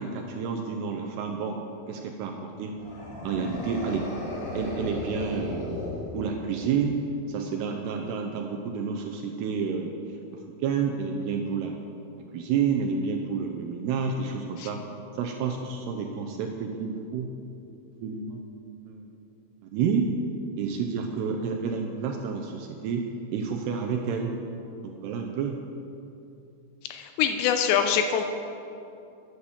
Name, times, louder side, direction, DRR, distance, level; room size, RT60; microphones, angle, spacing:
voice 1, 0.0-1.6 1.9-2.8 3.2-4.1 4.5-5.8 6.1-7.0 7.3-9.9 10.6-11.7 12.3-14.8 15.1-17.3 18.0-18.4 18.9-19.1 19.7-20.1 20.6-23.0 23.3-24.3 24.8-25.6, right 6 dB, 80° right, 3 dB, 2.4 m, -29 dB
sound 1, 2.8-6.7, left 2 dB, 65° left, 5.7 m, -35 dB
voice 2, 26.9-28.3, left 8 dB, 85° left, 7 dB, 2.6 m, -24 dB
13.0 x 10.0 x 7.2 m, 2.7 s
omnidirectional pair, 5.8 m